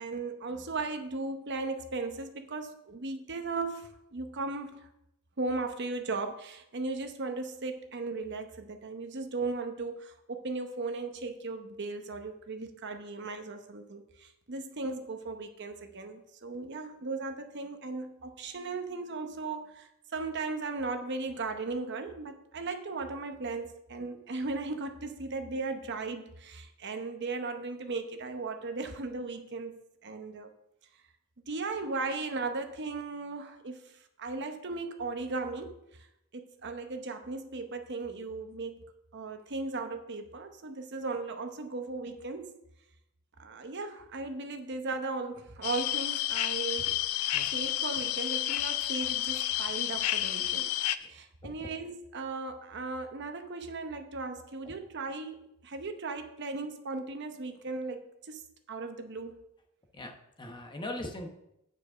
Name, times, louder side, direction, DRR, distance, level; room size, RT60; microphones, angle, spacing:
voice 1, 0.0-4.9 5.4-30.5 31.5-36.1 36.3-42.6 43.4-46.9 47.5-50.7 51.1-59.4, right 3 dB, 50° right, 6 dB, 0.8 m, -37 dB
sound 1, 45.6-51.0, left 13 dB, 75° left, 0.5 m, -30 dB
voice 2, 50.7-51.1 51.4-51.7 54.6-54.7 59.9-61.3, left 1 dB, 20° left, 4 dB, 0.9 m, -41 dB
9.0 x 5.0 x 6.0 m, 0.83 s
head